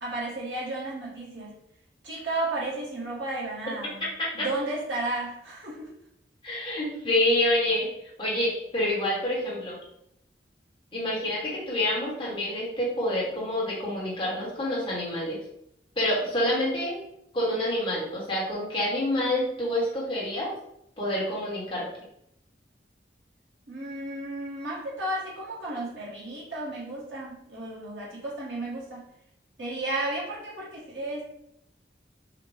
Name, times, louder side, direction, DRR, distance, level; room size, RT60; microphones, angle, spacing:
voice 1, 0.0-1.5 2.0-4.0 4.3-5.9 23.7-29.1 29.6-31.2, right 2 dB, 85° right, -6 dB, 1.6 m, -33 dB
voice 2, 4.0-4.5 6.4-7.9 8.2-9.8 10.9-15.4 16.0-16.9 17.3-20.5 21.0-21.9, left 1 dB, 30° left, -6 dB, 1.4 m, -27 dB
4.8 x 2.2 x 3.4 m, 0.78 s
head